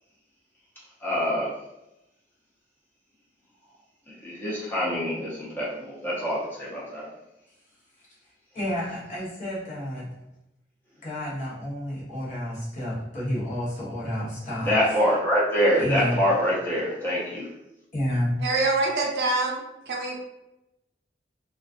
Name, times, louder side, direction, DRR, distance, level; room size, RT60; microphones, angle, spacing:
voice 1, 1.0-1.5 4.2-7.1 14.6-17.5, equal, 10° left, -7 dB, 0.7 m, -25 dB
voice 2, 8.5-10.1 11.0-14.7 15.8-16.2 17.9-18.4, equal, 40° left, -7 dB, 0.9 m, -30 dB
voice 3, 18.4-19.6 19.9-20.2, right 2 dB, 65° right, -1 dB, 0.6 m, -25 dB
2.3 x 2.3 x 2.4 m, 0.91 s
head